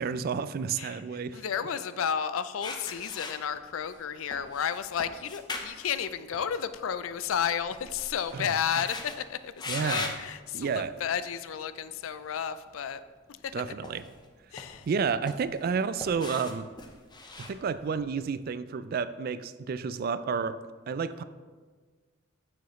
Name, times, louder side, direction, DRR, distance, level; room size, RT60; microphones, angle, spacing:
voice 1, 0.0-1.4 8.3-8.5 9.7-10.1 10.5-11.0 13.5-14.0 14.9-16.7 17.4-20.6 20.9-21.2, right 5 dB, 50° right, 14 dB, 0.3 m, -30 dB
voice 2, 1.3-13.0 13.4-13.5 14.5-14.9, left 8 dB, 80° left, 13 dB, 0.4 m, -32 dB
sound 1, 2.6-4.0 4.3-6.9 7.2-9.2 9.6-10.2 10.9-11.1 13.4-14.3 14.6-15.7 16.0-18.1, left 3 dB, 20° left, 0.7 m, -40 dB
9.1 x 6.9 x 3.1 m, 1.5 s
head